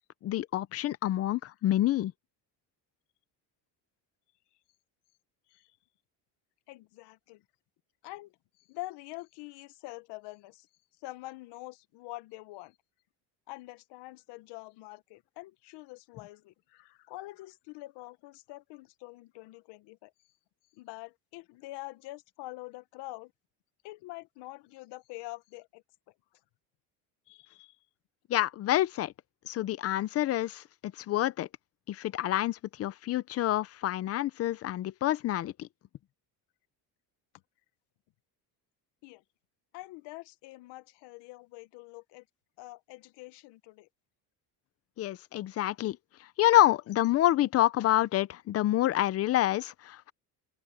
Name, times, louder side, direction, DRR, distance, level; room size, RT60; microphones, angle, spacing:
voice 1, 0.2-2.1 28.3-29.1 29.5-31.5 31.9-35.7 45.0-46.0 46.4-50.1, left 14 dB, 35° left, 0.5 m, -27 dB
voice 2, 6.7-7.4 8.0-10.7 11.0-12.8 13.5-20.1 20.7-23.3 23.8-25.8 27.3-27.8 39.0-39.2 39.7-42.2 42.6-43.9, left 20 dB, 75° left, 1.0 m, -45 dB
open air
cardioid pair, 165°, 42 cm